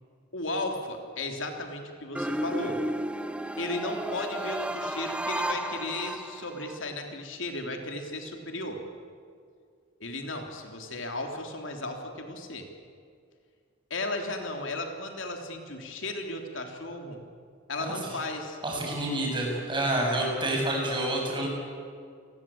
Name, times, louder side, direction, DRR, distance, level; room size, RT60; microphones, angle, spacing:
voice 1, 0.3-2.8 3.6-8.8 10.0-12.7 13.9-17.2 17.7-18.6, left 2 dB, 70° left, 4 dB, 3.3 m, -35 dB
sound 1, 2.1-6.8, right 1 dB, 5° right, 0.8 m, -33 dB
voice 2, 17.8-18.1 18.6-21.5, right 1 dB, 25° right, -1 dB, 7.8 m, -28 dB
29.0 x 21.5 x 8.7 m, 2.2 s
head